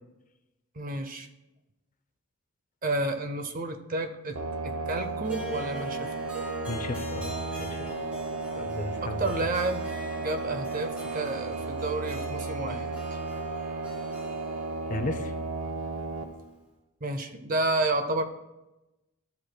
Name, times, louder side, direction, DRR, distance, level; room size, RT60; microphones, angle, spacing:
voice 1, 0.8-1.3 2.8-6.1 9.0-9.9 10.2-12.9 17.0-18.2, right 2 dB, 35° right, 8 dB, 0.6 m, -30 dB
sound 1, 4.4-16.2, right 3 dB, 70° right, 0.8 m, -34 dB
Harp, 5.2-16.5, right 1 dB, 5° right, 1.4 m, -44 dB
voice 2, 6.7-7.9 8.6-9.2 14.9-15.3, left 2 dB, 35° left, 8 dB, 0.5 m, -35 dB
13.0 x 7.7 x 2.2 m, 0.99 s
head